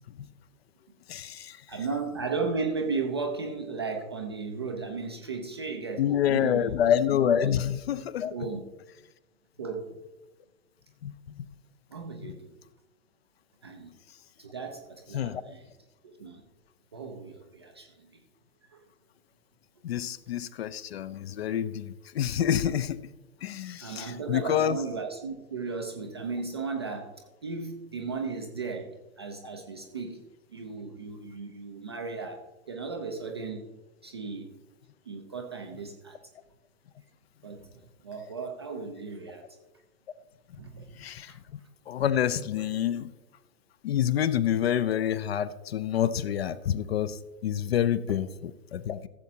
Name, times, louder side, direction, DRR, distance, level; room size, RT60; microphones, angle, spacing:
voice 1, 1.1-1.6 6.0-8.3 11.0-11.1 12.3-12.4 15.1-15.4 19.8-23.0 23.4-24.8 41.0-41.3 41.9-43.1 43.8-49.1, left 10 dB, 45° left, 16 dB, 0.5 m, -27 dB
voice 2, 1.7-6.7 7.4-7.5 8.3-8.6 9.6-9.9 11.9-12.5 13.6-13.9 14.4-15.7 16.0-16.4 16.9-18.1 18.7-18.8 23.8-30.2 30.5-33.7 34.0-34.5 35.1-36.2 37.4-37.7 38.0-39.5 40.6-41.0 41.3-41.4, right 4 dB, 20° right, 3 dB, 0.3 m, -35 dB
15.0 x 7.3 x 2.7 m, 1.1 s
figure-of-eight pair, 105°, 43 cm